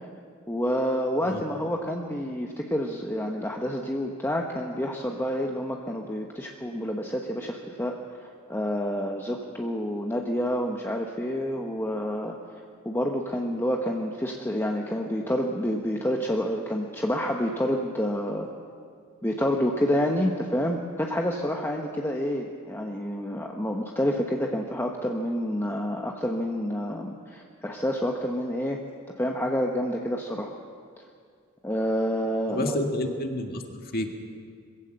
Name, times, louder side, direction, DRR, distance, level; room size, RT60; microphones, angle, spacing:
voice 1, 0.5-7.9 8.2-12.4 12.8-18.5 19.2-28.8 29.2-30.5 31.6-32.8, equal, 10° left, 1 dB, 1.1 m, -28 dB
voice 2, 32.5-33.6 33.9-34.1, left 1 dB, 45° left, 4 dB, 1.9 m, -29 dB
21.5 x 15.5 x 7.8 m, 2.2 s
head